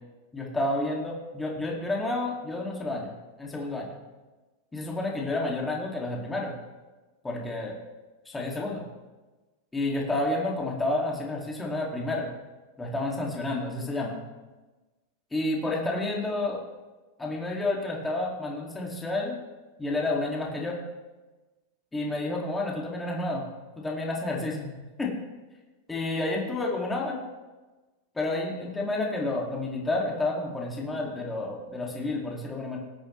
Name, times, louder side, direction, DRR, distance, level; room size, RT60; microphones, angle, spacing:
voice 1, 0.3-3.1 3.4-3.9 4.7-6.5 7.2-7.7 8.3-8.8 9.7-12.3 12.8-14.2 15.3-16.6 17.2-19.4 19.8-20.8 21.9-23.5 23.8-24.7 25.0-25.2 25.9-27.2 28.1-32.8, left 2 dB, 10° left, -2 dB, 2.5 m, -30 dB
21.0 x 8.4 x 3.3 m, 1.2 s
supercardioid pair, 145°, 0 cm